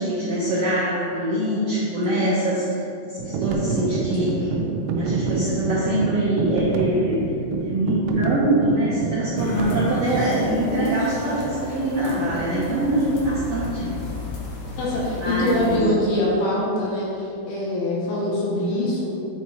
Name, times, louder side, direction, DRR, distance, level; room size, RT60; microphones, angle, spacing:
voice 1, 0.0-4.5 4.9-7.2 7.6-13.9 15.1-15.8, right 1 dB, 65° right, -12 dB, 1.6 m, -24 dB
sound 1, 3.2-10.5, right 4 dB, 85° right, 2.7 m, -26 dB
sound 2, 9.4-15.8, left 3 dB, 85° left, 1.6 m, -35 dB
voice 2, 14.8-19.1, left 1 dB, 70° left, -6 dB, 2.9 m, -23 dB
9.4 x 4.3 x 3.1 m, 2.7 s
omnidirectional pair, 4.7 m